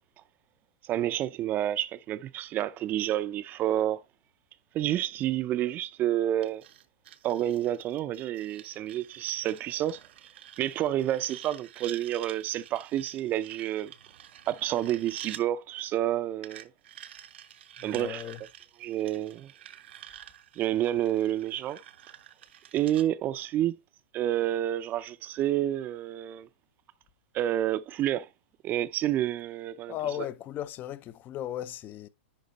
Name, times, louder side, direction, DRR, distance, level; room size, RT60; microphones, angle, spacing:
voice 1, 0.9-4.0 4.7-6.6 7.2-10.0 10.6-13.9 14.5-16.7 17.8-18.2 18.8-19.5 20.6-21.8 22.7-23.7 24.1-26.5 27.3-28.3 28.6-29.9, right 12 dB, 30° right, 0.6 m, -29 dB
sound 1, 6.4-15.4 16.4-23.1, right 11 dB, 70° right, 0.9 m, -48 dB
voice 2, 17.8-18.4 29.9-32.1, left 11 dB, 30° left, 0.6 m, -36 dB
10.5 x 3.7 x 4.1 m
hypercardioid pair, 120°, 6 cm